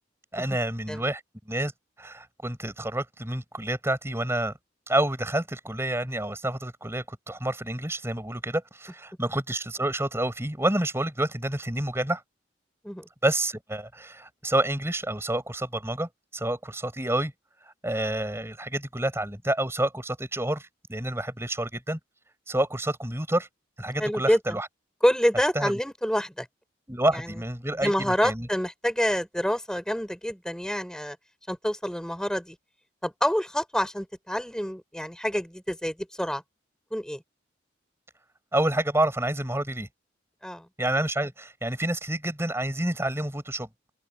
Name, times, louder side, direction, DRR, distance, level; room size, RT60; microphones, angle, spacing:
voice 1, 0.3-1.2 1.5-1.7 2.0-4.5 4.9-12.2 13.2-17.3 17.6-22.0 22.5-23.5 23.8-24.7 25.5-25.8 26.9-28.5 38.5-39.9 40.8-43.7, right 1 dB, 15° right, 7.4 m, -28 dB
voice 2, 24.0-24.6 25.0-26.5 27.1-27.3 27.8-31.2 31.5-32.5 33.0-36.4 36.9-37.2 40.4-40.6, equal, 5° left, 6.5 m, -27 dB
open air
head